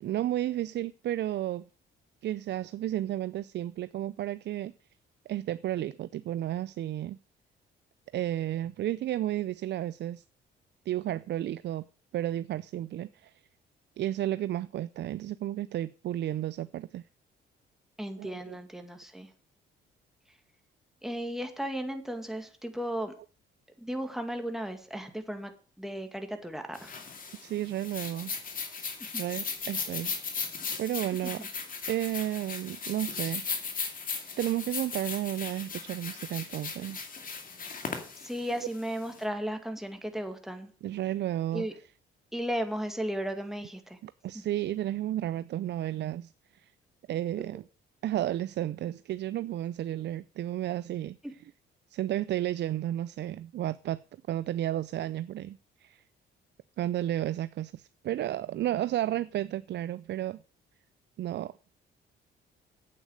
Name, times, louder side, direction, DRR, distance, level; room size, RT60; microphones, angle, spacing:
voice 1, 0.0-1.7 2.2-4.7 5.3-7.2 8.1-10.2 10.9-11.9 12.1-13.4 14.0-17.0 18.2-18.6 27.4-28.3 29.2-30.1 30.8-31.5 31.9-33.7 34.4-37.0 40.8-41.7 44.0-46.7 47.1-47.6 48.0-51.2 51.9-54.0 54.3-56.0 56.8-60.4 61.2-61.5, right 13 dB, 60° right, 0.5 m, -32 dB
voice 2, 18.0-19.3 21.0-23.1 23.8-25.5 25.8-26.9 29.0-29.2 31.2-31.5 38.2-40.7 41.5-41.7 42.3-44.0 44.3-44.4, equal, ahead, 2.1 m, -35 dB
sound 1, 26.7-39.2, left 5 dB, 45° left, 2.4 m, -37 dB
8.6 x 8.4 x 6.4 m
cardioid pair, 90°, 20 cm